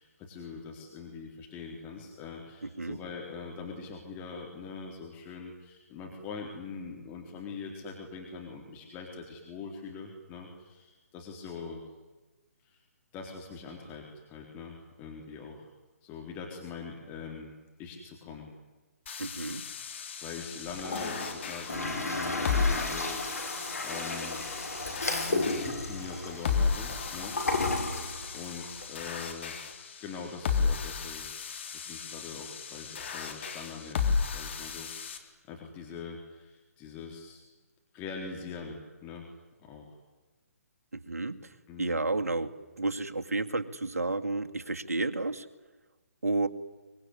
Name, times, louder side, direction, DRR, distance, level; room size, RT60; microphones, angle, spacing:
voice 1, 0.0-11.8 12.6-12.8 13.1-15.7 16.0-17.5 17.8-18.5 20.2-24.4 25.0-27.4 27.8-29.6 30.0-31.3 31.7-34.0 34.3-37.4 37.9-39.2 39.6-40.0 41.7-42.0, left 5 dB, 20° left, 0 dB, 3.9 m, -43 dB
voice 2, 2.6-3.0 19.2-19.6 40.9-41.5 41.8-45.5 46.2-46.5, right 2 dB, 70° right, 7 dB, 2.1 m, -31 dB
sound 1, 19.1-35.2, left 5 dB, 45° left, 3.7 m, -34 dB
Toilet flush, 20.7-28.9, left 2 dB, 70° left, 6.2 m, -33 dB
24.5 x 23.5 x 9.9 m, 1.2 s
figure-of-eight pair, 135°, 8 cm